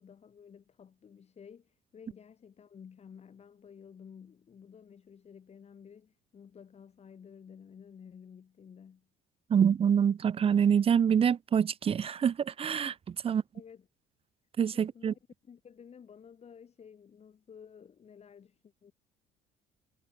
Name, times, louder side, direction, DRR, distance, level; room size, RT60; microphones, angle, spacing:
voice 1, 0.0-9.1 13.2-13.9 14.7-18.9, left 7 dB, 40° left, 3.1 m, -53 dB
voice 2, 9.5-13.4 14.6-15.1, right 8 dB, 35° right, 0.6 m, -26 dB
cardioid pair, 110°, 17 cm